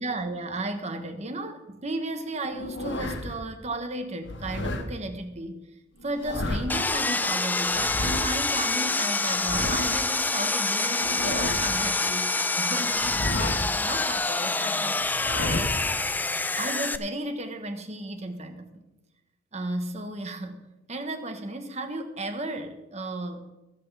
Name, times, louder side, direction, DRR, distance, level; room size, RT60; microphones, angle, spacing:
voice 1, 0.0-5.7 6.0-15.1 15.5-18.8 19.5-20.6 20.9-23.4, right 2 dB, 35° right, 7 dB, 1.2 m, -34 dB
sound 1, 2.5-3.4 4.2-4.9 6.0-6.9 7.7-8.3 9.2-10.1 10.9-11.9 12.9-13.8 15.0-15.9, left 1 dB, 65° left, 1.3 m, -32 dB
Sawing, 6.7-17.0, left 3 dB, 10° left, 0.3 m, -26 dB
24.0 x 8.2 x 3.4 m, 1.0 s
head